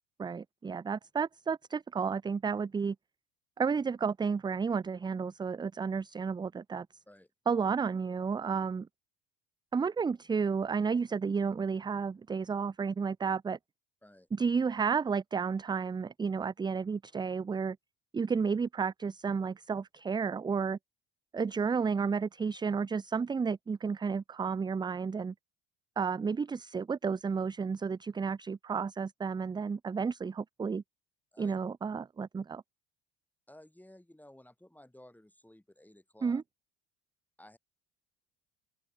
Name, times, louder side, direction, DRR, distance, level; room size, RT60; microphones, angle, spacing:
voice 1, 0.2-3.0 3.6-6.9 7.5-8.9 9.7-13.6 14.3-17.8 18.1-20.8 21.3-25.3 26.0-30.8 31.4-32.6 36.2-36.4, right 5 dB, 15° right, 0.4 m, -32 dB
voice 2, 33.5-36.4 37.4-37.6, left 1 dB, 5° left, 5.8 m, -56 dB
open air
supercardioid pair, 85°, 35 cm